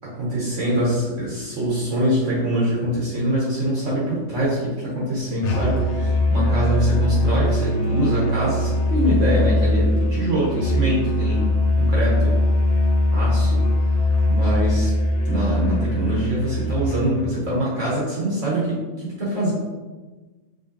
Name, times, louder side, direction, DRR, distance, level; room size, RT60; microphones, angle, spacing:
voice 1, 0.2-12.3 13.1-13.6 14.3-14.9 15.3-19.5, equal, 60° right, -6 dB, 1.4 m, -24 dB
Musical instrument, 5.4-17.1, left 1 dB, 60° left, 0.9 m, -21 dB
5.1 x 3.4 x 2.7 m, 1.3 s
omnidirectional pair, 1.5 m